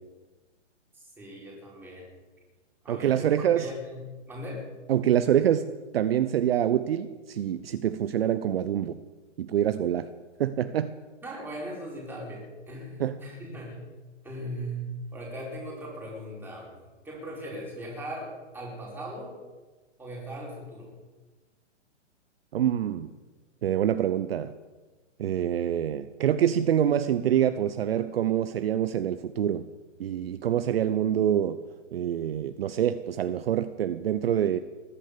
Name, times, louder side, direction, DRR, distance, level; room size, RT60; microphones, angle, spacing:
voice 1, 0.9-2.1 2.8-4.0 4.3-4.6 11.2-13.8 14.2-14.8 15.1-16.7 17.0-19.3 20.0-20.9, equal, 5° right, -3 dB, 4.7 m, -39 dB
voice 2, 2.9-3.7 4.9-9.0 9.4-10.1 10.4-10.9 13.0-13.2 22.5-23.1 23.6-24.5 25.2-29.7 30.0-31.6 31.9-34.6, right 10 dB, 50° right, 12 dB, 0.8 m, -26 dB
19.5 x 10.0 x 6.8 m, 1.2 s
hypercardioid pair, 145°, 37 cm